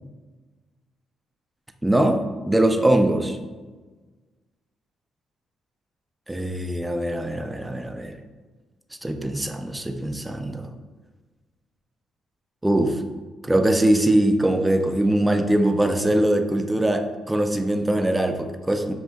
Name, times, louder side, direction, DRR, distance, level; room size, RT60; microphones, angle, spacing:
voice 1, 1.8-3.4 6.3-8.2 9.0-10.7 12.6-13.0 13.4-18.9, right 1 dB, 10° right, 6 dB, 0.4 m, -22 dB
6.2 x 2.6 x 2.2 m, 1.3 s
cardioid pair, 90°, 0 cm